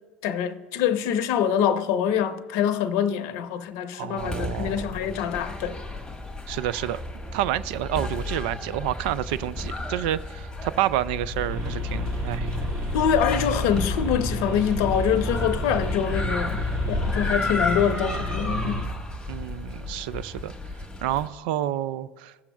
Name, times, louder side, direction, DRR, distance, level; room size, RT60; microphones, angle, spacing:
voice 1, 0.2-5.8 12.9-16.6 16.9-18.9, left 8 dB, 65° left, 0.6 m, -25 dB
voice 2, 3.9-4.8 6.5-7.0 7.3-12.5 19.3-20.5 21.0-22.3, right 13 dB, 70° right, 0.3 m, -29 dB
sound 1, 4.2-21.3, left 2 dB, 10° left, 1.2 m, -33 dB
sound 2, 11.5-18.8, left 1 dB, 45° right, 2.0 m, -30 dB
16.0 x 6.9 x 2.3 m
hypercardioid pair, 75°, 6 cm